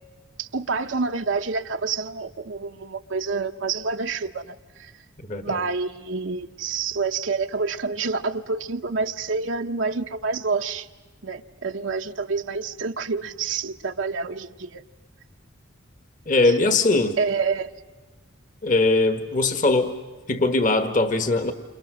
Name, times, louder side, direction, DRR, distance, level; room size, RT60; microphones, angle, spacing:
voice 1, 0.4-4.9 5.4-10.9 11.2-14.8 16.4-16.5 17.2-17.7, right 4 dB, 75° right, 5 dB, 0.9 m, -28 dB
voice 2, 5.3-5.6 16.3-17.2 18.6-19.9 20.3-21.5, left 2 dB, 40° left, 8 dB, 1.4 m, -21 dB
29.0 x 28.5 x 6.3 m, 1.3 s
head